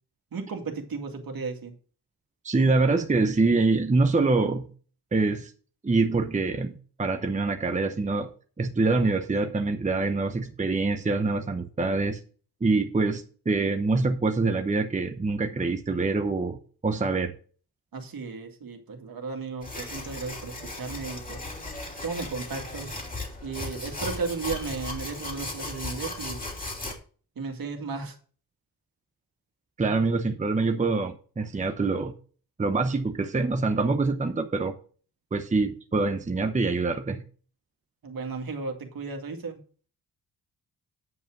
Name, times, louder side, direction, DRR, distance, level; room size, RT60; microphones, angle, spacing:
voice 1, 0.3-1.7 17.9-21.4 22.0-22.9 23.4-26.4 27.4-28.2 38.0-39.6, right 4 dB, 60° right, 2.2 m, -34 dB
voice 2, 2.4-4.7 5.1-5.5 5.8-8.3 8.6-12.2 12.6-17.3 29.8-32.1 32.6-34.7 35.3-37.2, right 3 dB, 20° right, 0.9 m, -25 dB
sound 1, 19.6-26.9, left 2 dB, 20° left, 2.8 m, -36 dB
9.5 x 5.6 x 6.1 m
wide cardioid pair, 110°, 39 cm